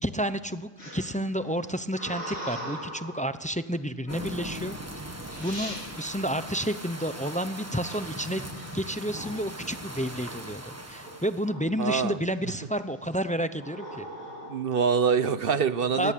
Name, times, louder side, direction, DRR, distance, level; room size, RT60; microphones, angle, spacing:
voice 1, 0.0-4.8 5.1-8.4 8.7-14.1 16.0-16.1, equal, 10° left, 11 dB, 0.6 m, -30 dB
sound 1, 0.8-3.3 4.0-4.4 5.0-5.1 5.3-5.8 7.8-9.5 9.9-10.3 10.6-11.8 12.3-12.7 13.5-14.6, equal, 40° left, 7.4 m, -41 dB
sound 2, 4.1-11.5, right 1 dB, 10° right, 1.5 m, -40 dB
voice 2, 11.8-12.2 14.5-16.1, right 6 dB, 45° right, 13 dB, 1.1 m, -25 dB
23.0 x 19.5 x 8.6 m, 1.2 s
omnidirectional pair, 1.4 m